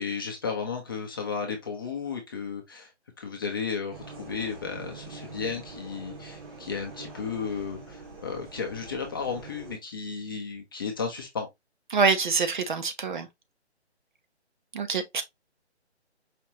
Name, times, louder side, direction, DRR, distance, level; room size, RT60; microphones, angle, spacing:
voice 1, 0.0-2.9 3.2-11.5, left 5 dB, 20° left, 0.6 m, -34 dB
sound 1, 3.9-9.8, right 3 dB, 20° right, 0.9 m, -44 dB
voice 2, 11.9-13.3 14.7-15.2, right 4 dB, 45° right, 0.7 m, -25 dB
5.0 x 3.0 x 2.8 m
hypercardioid pair, 155°, 34 cm